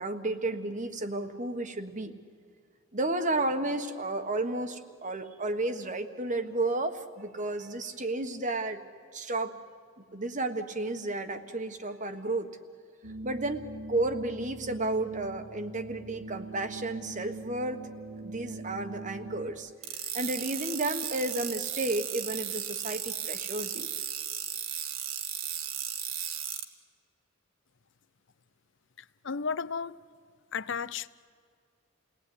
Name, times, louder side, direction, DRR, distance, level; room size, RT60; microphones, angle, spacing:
voice 1, 0.0-2.1 2.9-8.8 9.1-9.6 10.1-12.5 13.2-17.8 18.2-19.7 20.1-23.9, right 2 dB, 35° right, 1.5 m, -32 dB
sound 1, 13.0-19.5, right 2 dB, 85° right, 2.7 m, -42 dB
sound 2, 19.8-26.6, right 9 dB, 70° right, 1.9 m, -35 dB
voice 2, 29.0-30.0 30.5-31.1, left 5 dB, 60° left, 0.7 m, -34 dB
30.0 x 19.0 x 9.7 m
head